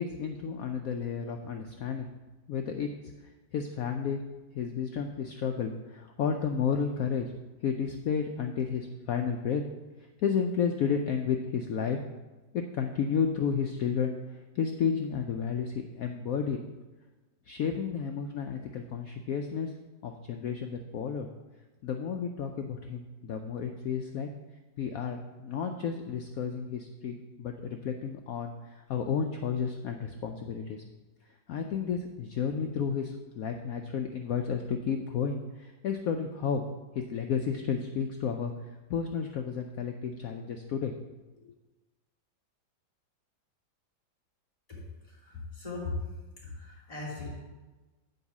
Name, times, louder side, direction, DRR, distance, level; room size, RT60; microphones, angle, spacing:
voice 1, 0.0-2.1 2.5-2.9 3.5-4.2 4.5-7.3 7.6-9.6 10.2-12.0 12.5-16.6 17.5-19.7 20.0-21.3 21.8-24.3 24.8-30.8 31.5-36.6 36.9-40.9 41.4-41.5, left 6 dB, 85° left, 5 dB, 0.7 m, -32 dB
voice 2, 45.2-45.9 46.5-47.3, left 3 dB, 20° left, -6 dB, 2.8 m, -39 dB
8.1 x 4.8 x 7.1 m, 1.2 s
omnidirectional pair, 2.1 m